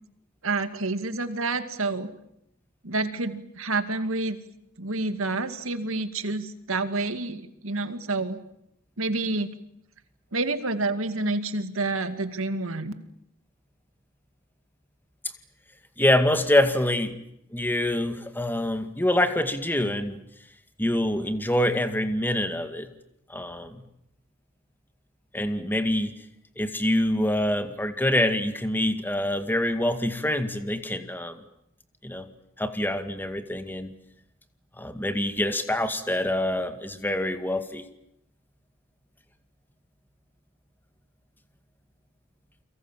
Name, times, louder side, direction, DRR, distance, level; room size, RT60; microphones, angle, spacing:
voice 1, 0.4-2.1 2.8-4.4 4.8-8.4 9.0-9.5 10.3-12.9, right 3 dB, 70° right, 10 dB, 2.2 m, -28 dB
voice 2, 16.0-17.1 17.5-20.2 20.8-22.9 23.3-23.8 25.3-26.1 26.6-31.4 32.0-32.3 32.6-33.9 34.8-37.8, left 1 dB, 10° left, 8 dB, 2.2 m, -25 dB
29.5 x 23.5 x 7.5 m, 0.76 s
head